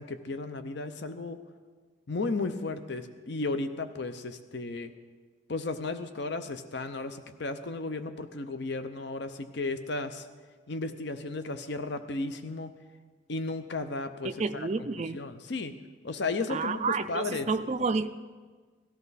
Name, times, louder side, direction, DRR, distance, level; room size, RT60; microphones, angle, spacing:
voice 1, 0.0-1.4 2.1-4.9 5.5-10.3 10.7-12.7 13.3-14.7 15.0-15.7 16.0-16.8 17.1-17.7, left 3 dB, 55° left, 10 dB, 0.7 m, -34 dB
voice 2, 14.2-15.2 16.5-18.1, right 4 dB, 35° right, 8 dB, 0.4 m, -30 dB
18.5 x 13.0 x 4.1 m, 1.4 s
head